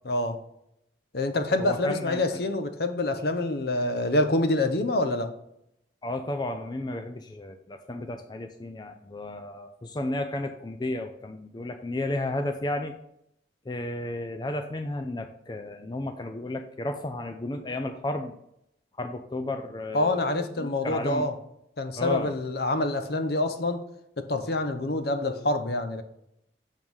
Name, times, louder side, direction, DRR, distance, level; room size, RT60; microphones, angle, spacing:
voice 1, 0.1-0.4 1.1-5.3 19.9-21.4 21.8-23.8 24.2-26.0, left 2 dB, 60° left, 0.7 m, -26 dB
voice 2, 1.6-2.2 6.0-12.9 13.7-18.4 19.0-21.3 22.0-22.4, left 1 dB, 25° left, 0.4 m, -33 dB
7.1 x 3.7 x 6.2 m
head